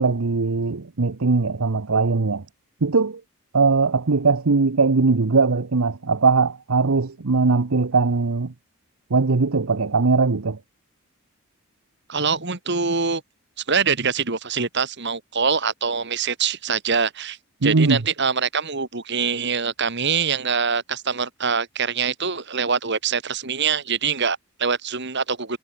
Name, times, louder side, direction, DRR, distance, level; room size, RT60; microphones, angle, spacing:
voice 1, 0.0-2.4 2.8-3.2 3.5-8.5 9.1-10.6 17.6-18.0, right 4 dB, 75° right, 0.9 m, -20 dB
voice 2, 12.1-13.2 13.7-25.6, right 5 dB, 50° right, 2.4 m, -24 dB
head